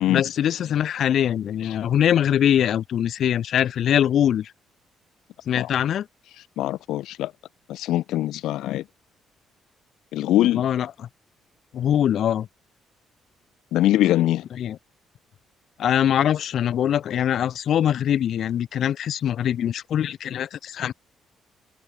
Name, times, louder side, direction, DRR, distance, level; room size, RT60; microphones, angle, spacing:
voice 1, 0.1-4.5 5.5-6.1 10.5-10.9 11.7-12.5 14.5-14.8 15.8-20.9, left 10 dB, 65° left, 4.2 m, -22 dB
voice 2, 6.6-7.3 7.7-8.8 10.1-10.6 13.7-14.4, left 14 dB, 85° left, 1.3 m, -22 dB
cardioid pair, 90°, 0 cm